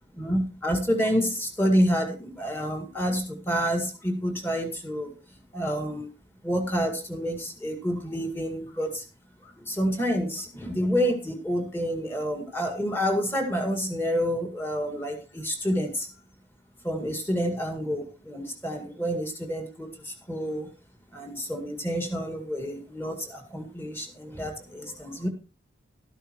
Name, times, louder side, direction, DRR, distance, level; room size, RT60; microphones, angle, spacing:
voice 1, 0.1-5.1 5.5-6.1 6.4-9.0 9.4-16.1 16.8-20.7 21.1-25.3, equal, 10° left, 5 dB, 2.1 m, -28 dB
13.0 x 12.0 x 3.1 m, 0.32 s
head